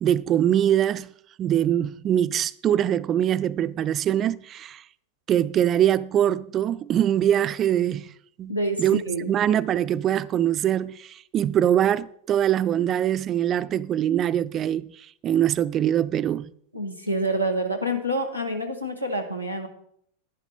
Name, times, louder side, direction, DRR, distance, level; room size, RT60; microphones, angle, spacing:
voice 1, 0.0-1.1 1.4-4.8 5.3-8.1 8.4-9.0 9.3-16.5, right 10 dB, 30° right, 0.4 m, -23 dB
voice 2, 8.5-9.3 16.7-19.7, right 1 dB, 90° left, 1.6 m, -27 dB
11.0 x 10.5 x 4.3 m
figure-of-eight pair, 90°, 0 cm